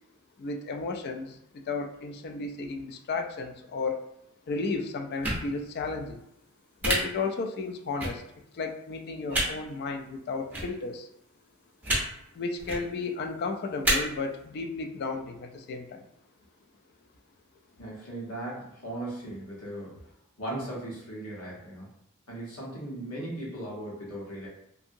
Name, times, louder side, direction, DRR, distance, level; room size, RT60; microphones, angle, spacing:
voice 1, 0.4-4.0 4.5-6.2 6.8-8.2 8.5-11.1 12.3-16.1, left 4 dB, 50° left, 5 dB, 0.3 m, -33 dB
sound 1, 5.2-5.4 6.8-6.9 8.0-8.1 9.3-9.5 10.5-10.6 11.8-12.0 12.6-12.8 13.8-13.9, right 1 dB, 10° right, 0.6 m, -26 dB
voice 2, 17.8-19.9 20.4-21.9 22.3-24.5, right 1 dB, 85° left, -4 dB, 1.2 m, -37 dB
2.7 x 2.6 x 2.6 m, 0.77 s
head